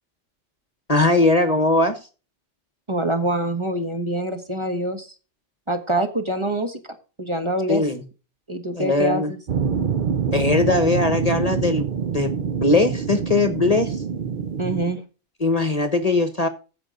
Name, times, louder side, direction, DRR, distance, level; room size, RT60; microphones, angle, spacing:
voice 1, 0.9-2.0 7.7-8.0 8.7-9.3 10.3-12.3 12.6-14.0 15.4-16.5, left 2 dB, 35° left, 9 dB, 1.2 m, -20 dB
voice 2, 2.9-5.1 5.7-6.8 7.2-7.8 8.5-9.4 14.6-15.0, right 1 dB, 25° right, 6 dB, 1.5 m, -25 dB
sound 1, 9.5-14.8, right 6 dB, 50° right, 0.8 m, -25 dB
15.0 x 5.6 x 3.8 m, 0.33 s
omnidirectional pair, 1.3 m